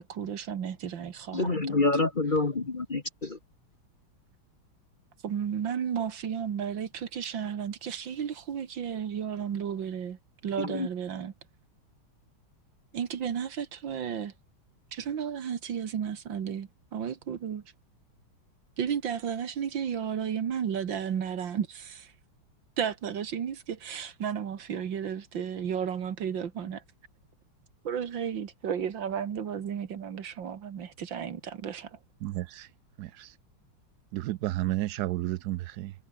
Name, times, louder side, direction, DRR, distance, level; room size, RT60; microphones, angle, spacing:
voice 1, 0.0-1.8 5.2-11.3 12.9-14.3 14.9-17.6 18.8-22.1 22.8-26.8 27.8-32.0, right 8 dB, 65° right, 2.2 m, -33 dB
voice 2, 1.3-3.4 10.6-10.9, left 3 dB, 30° left, 1.2 m, -27 dB
voice 3, 32.2-32.7 33.0-33.3 34.1-35.9, right 15 dB, 85° right, 0.8 m, -32 dB
omnidirectional pair, 2.3 m